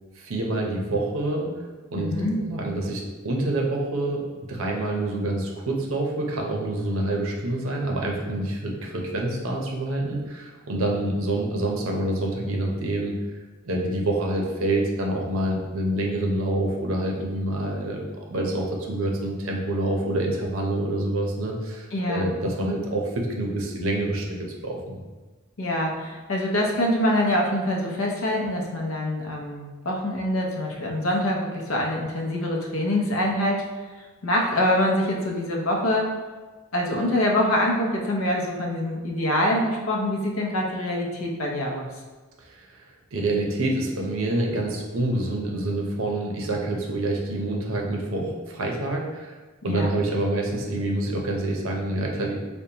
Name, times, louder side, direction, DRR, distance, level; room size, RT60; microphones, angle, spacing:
voice 1, 0.2-2.1 2.4-4.2 4.5-13.2 13.6-18.0 18.3-25.0 42.4-42.8 43.1-49.4 49.6-52.4, right 1 dB, 70° right, 0 dB, 0.7 m, -27 dB
voice 2, 1.9-2.4 21.9-22.3 25.6-33.6 34.2-36.1 36.7-41.9 49.6-49.9, left 1 dB, 70° left, 0 dB, 0.7 m, -25 dB
5.1 x 2.2 x 2.8 m, 1.3 s
head